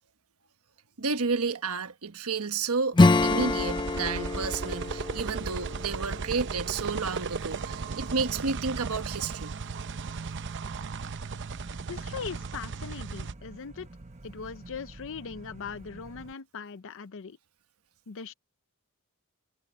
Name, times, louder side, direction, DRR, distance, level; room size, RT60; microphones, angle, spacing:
voice 1, 1.0-9.5, right 4 dB, 70° right, 1.2 m, -31 dB
Acoustic guitar / Strum, 2.9-7.2, left 3 dB, 20° left, 0.4 m, -26 dB
sound 1, 3.1-13.3, right 4 dB, 55° right, 0.7 m, -36 dB
sound 2, 10.0-16.3, right 2 dB, 30° right, 0.9 m, -48 dB
voice 2, 11.9-13.9 14.2-17.4 18.1-18.3, left 6 dB, 60° left, 0.6 m, -40 dB
head